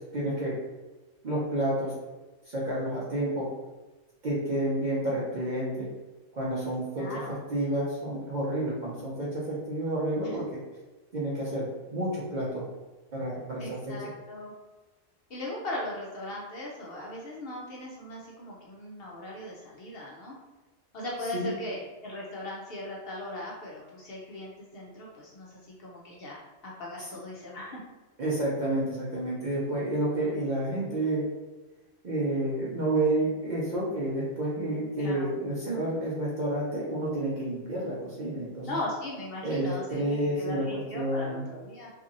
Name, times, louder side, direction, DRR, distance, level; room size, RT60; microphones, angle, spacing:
voice 1, 0.1-0.5 1.2-1.9 2.5-3.5 4.2-5.9 6.3-7.0 7.5-10.4 11.1-12.7 13.1-14.1 21.3-21.5 28.2-31.2 32.0-38.8 39.4-41.4, right 1 dB, 50° right, -6 dB, 0.6 m, -30 dB
voice 2, 7.0-7.4 10.2-10.3 13.6-14.5 15.3-20.3 20.9-27.8 35.0-35.3 38.6-41.9, left 1 dB, 60° left, -3 dB, 0.7 m, -38 dB
2.8 x 2.6 x 2.5 m, 1.2 s
omnidirectional pair, 1.3 m